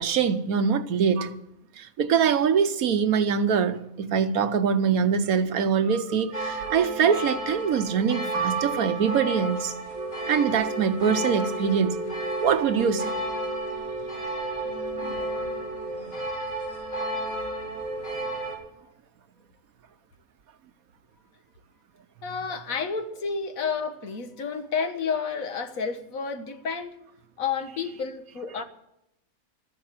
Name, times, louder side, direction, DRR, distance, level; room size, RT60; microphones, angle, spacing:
voice 1, 0.0-1.4 1.8-9.7 10.3-12.0 12.4-13.1 28.5-28.6, right 7 dB, 85° right, 1.4 m, -24 dB
sound 1, 6.3-18.6, right 1 dB, 30° left, 4.7 m, -32 dB
sound 2, 8.3-9.6, right 7 dB, 35° right, 5.0 m, -32 dB
Wind instrument woodwind instrument, 9.9-16.0, right 2 dB, 60° right, 2.1 m, -37 dB
voice 2, 22.2-27.0 27.4-28.6, left 5 dB, 75° left, 1.7 m, -30 dB
13.5 x 10.5 x 7.5 m
omnidirectional pair, 1.5 m